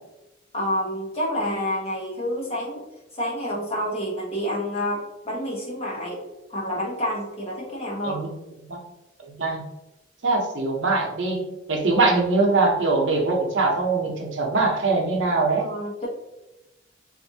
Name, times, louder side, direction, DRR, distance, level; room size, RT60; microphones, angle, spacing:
voice 1, 0.5-2.8 3.1-6.2 6.5-8.2 15.5-16.1, equal, 35° left, -4 dB, 1.1 m, -28 dB
voice 2, 9.2-9.6 10.2-11.4 11.7-15.7, right 3 dB, 80° right, 0 dB, 0.8 m, -22 dB
3.3 x 2.6 x 2.7 m, 0.96 s
head